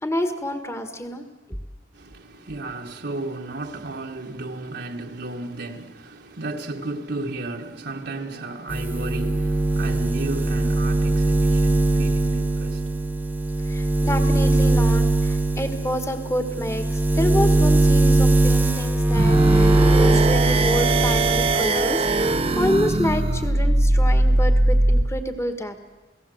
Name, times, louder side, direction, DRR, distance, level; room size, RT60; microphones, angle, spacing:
voice 1, 0.0-1.2 13.7-25.8, left 1 dB, 15° left, 1.6 m, -28 dB
voice 2, 1.9-13.6, right 2 dB, 60° right, 1.6 m, -34 dB
sound 1, 8.7-21.7 22.0-23.0, right 2 dB, 10° right, 1.3 m, -20 dB
sound 2, 19.1-25.1, right 2 dB, 35° right, 0.9 m, -20 dB
29.5 x 17.5 x 7.9 m
head